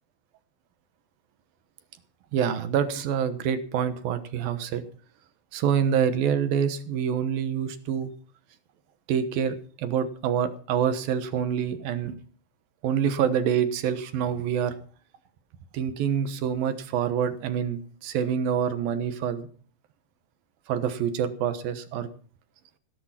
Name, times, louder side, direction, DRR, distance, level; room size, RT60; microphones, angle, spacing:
voice 1, 2.3-4.8 5.5-8.1 9.1-12.2 12.8-14.7 15.7-19.5 20.7-22.1, right 8 dB, 70° right, 11 dB, 2.9 m, -26 dB
18.5 x 10.5 x 5.8 m, 0.42 s
omnidirectional pair, 4.5 m